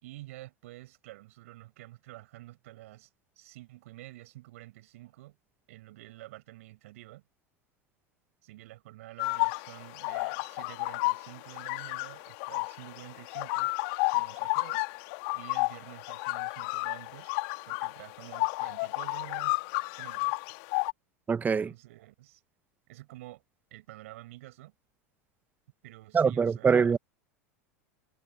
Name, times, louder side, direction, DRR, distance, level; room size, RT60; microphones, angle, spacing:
voice 1, 0.0-3.1 3.4-5.4 5.7-7.2 8.4-13.7 14.1-14.9 15.3-17.3 17.7-19.6 19.9-20.4 21.6-22.4 22.9-23.4 23.7-24.7 25.8-27.0, right 17 dB, 65° right, 6.3 m, -49 dB
sound 1, 9.2-20.9, left 32 dB, 55° left, 2.5 m, -32 dB
voice 2, 21.3-21.7 26.1-27.0, right 6 dB, 20° right, 1.5 m, -24 dB
figure-of-eight pair, 80°, 8 cm